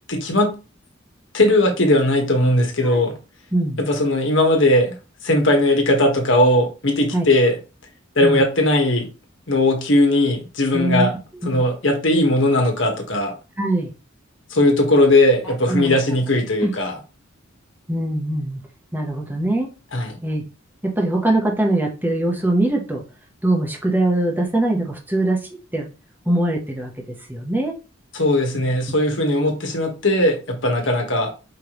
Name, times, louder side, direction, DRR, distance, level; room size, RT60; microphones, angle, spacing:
voice 1, 0.1-0.5 1.3-3.1 3.8-4.9 5.2-7.6 8.1-9.1 9.5-11.1 11.4-13.3 14.5-16.9 19.9-20.2 28.1-31.3, left 1 dB, 65° left, 2 dB, 1.4 m, -18 dB
voice 2, 3.5-3.8 7.1-7.3 8.2-8.4 10.7-11.1 11.4-11.6 13.6-13.9 15.7-16.0 16.6-16.7 17.9-18.6 18.9-19.7 20.2-20.4 20.8-23.0 23.4-25.4 25.7-25.9 26.3-26.9 27.3-27.7, right 1 dB, 10° right, 0 dB, 1.1 m, -22 dB
5.0 x 3.4 x 3.1 m, 0.31 s
head